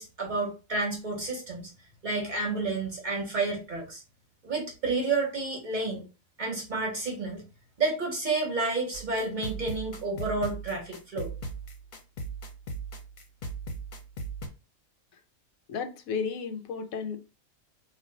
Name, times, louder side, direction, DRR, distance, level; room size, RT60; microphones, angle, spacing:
voice 1, 0.0-1.7 2.0-4.0 4.4-6.0 6.4-7.4 7.8-11.3, right 3 dB, 40° right, 0.8 m, -30 dB
sound 1, 8.9-14.5, right 2 dB, 50° left, 0.5 m, -38 dB
voice 2, 15.7-17.2, left 6 dB, 85° left, 1.0 m, -33 dB
2.5 x 2.1 x 3.7 m
omnidirectional pair, 1.4 m